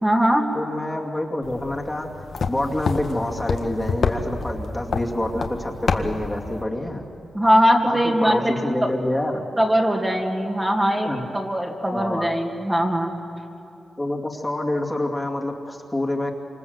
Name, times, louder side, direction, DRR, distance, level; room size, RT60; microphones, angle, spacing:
voice 1, 0.0-0.4 7.3-8.9 9.6-13.1, equal, 15° right, 0 dB, 2.4 m, -21 dB
voice 2, 0.5-7.0 7.8-9.4 11.0-11.3 11.9-12.3 14.0-16.3, left 1 dB, 15° left, 0 dB, 2.4 m, -27 dB
sound 1, 1.4-6.6, left 4 dB, 65° left, 1.7 m, -28 dB
27.0 x 26.5 x 8.0 m, 2.7 s
wide cardioid pair, 110°, 0 cm